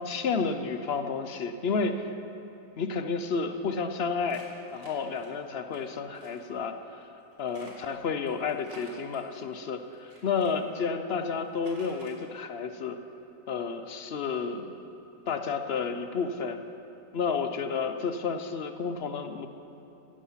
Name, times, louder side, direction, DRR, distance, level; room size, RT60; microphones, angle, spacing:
voice 1, 0.0-2.1 2.8-4.5 4.7-7.1 7.4-13.0 13.5-14.7 15.3-16.6 17.1-19.5, left 5 dB, 55° left, 8 dB, 0.8 m, -31 dB
sound 1, 4.3-5.8 6.1-6.5 7.3-10.5 11.2-12.2, right 1 dB, 70° right, 2.7 m, -53 dB
15.0 x 11.5 x 5.7 m, 2.9 s
omnidirectional pair, 1.6 m